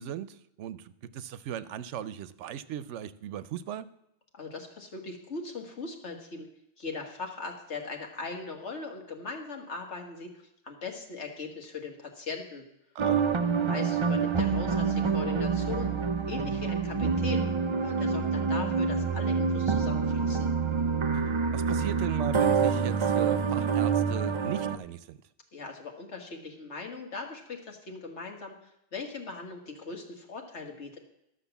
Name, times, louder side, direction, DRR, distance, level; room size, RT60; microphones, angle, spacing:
voice 1, 0.0-3.9 12.9-13.3 21.5-25.2, right 10 dB, 90° right, 15 dB, 0.9 m, -37 dB
voice 2, 4.3-6.5 6.8-12.6 13.4-15.9 16.3-17.5 17.8-20.5 25.5-31.0, left 4 dB, 75° left, 2 dB, 2.0 m, -39 dB
sound 1, 13.0-24.8, right 5 dB, 40° right, 0.4 m, -27 dB
12.5 x 6.3 x 7.0 m, 0.80 s
omnidirectional pair, 1.2 m